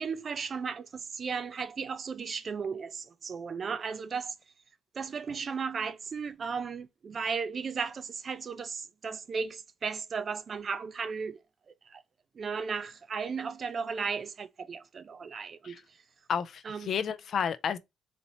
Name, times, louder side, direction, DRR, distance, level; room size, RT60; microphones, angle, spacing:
voice 1, 0.0-4.3 4.9-11.4 11.9-12.0 12.4-15.8 16.6-16.9, right 5 dB, 35° right, 0.4 m, -35 dB
voice 2, 16.3-17.8, left 7 dB, 45° left, 0.4 m, -31 dB
4.1 x 2.8 x 4.1 m
cardioid pair, 150°, 0 cm